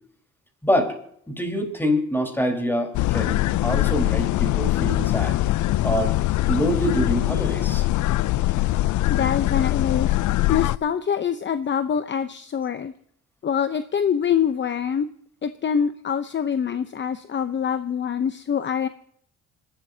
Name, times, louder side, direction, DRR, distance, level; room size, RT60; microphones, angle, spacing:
voice 1, 0.6-1.0 1.3-5.4 5.8-6.2 6.5-7.9, equal, 5° left, 4 dB, 4.3 m, -25 dB
sound 1, 2.9-10.8, left 16 dB, 75° left, 0.5 m, -22 dB
voice 2, 9.1-10.1 10.5-12.9 13.4-15.1 15.4-18.9, left 7 dB, 40° left, 10 dB, 0.8 m, -25 dB
27.0 x 12.0 x 2.8 m, 0.67 s
cardioid pair, 90°, 30 cm